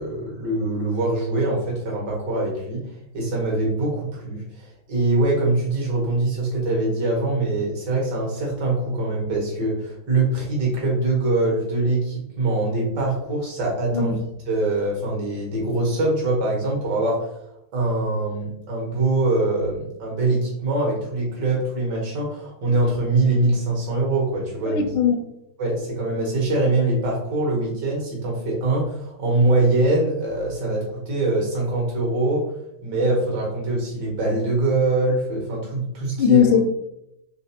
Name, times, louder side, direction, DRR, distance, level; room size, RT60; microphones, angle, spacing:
voice 1, 0.0-2.8 3.1-14.2 14.5-17.2 17.7-24.9 25.6-32.5 32.8-36.5, right 2 dB, 55° right, -2 dB, 1.7 m, -23 dB
voice 2, 24.7-25.2 36.2-36.6, left 8 dB, 75° left, 4 dB, 1.2 m, -18 dB
4.0 x 3.1 x 2.8 m, 0.80 s
omnidirectional pair, 2.3 m